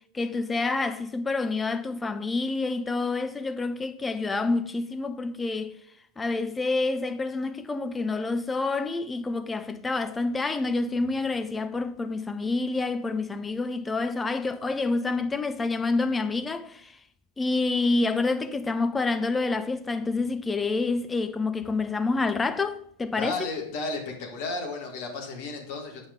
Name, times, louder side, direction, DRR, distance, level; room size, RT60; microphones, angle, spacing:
voice 1, 0.1-5.7 6.2-16.9 17.4-23.4, left 3 dB, 10° left, 0.5 m, -28 dB
voice 2, 23.2-26.1, left 3 dB, 50° left, 1.7 m, -33 dB
7.9 x 5.5 x 3.7 m
figure-of-eight pair, 90°, 0 cm